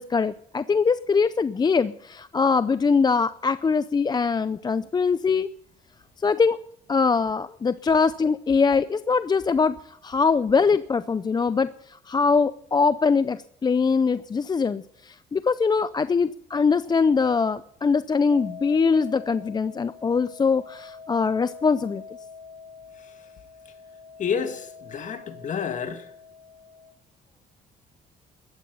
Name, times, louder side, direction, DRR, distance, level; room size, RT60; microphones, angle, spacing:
voice 1, 0.0-5.5 6.2-6.6 6.9-9.8 10.0-22.0, left 5 dB, 25° left, 0.5 m, -22 dB
sound 1, 18.3-26.9, left 5 dB, 40° right, 7.4 m, -45 dB
voice 2, 24.2-26.1, left 7 dB, 50° left, 2.3 m, -29 dB
16.0 x 12.5 x 5.5 m
cardioid pair, 100°, 17 cm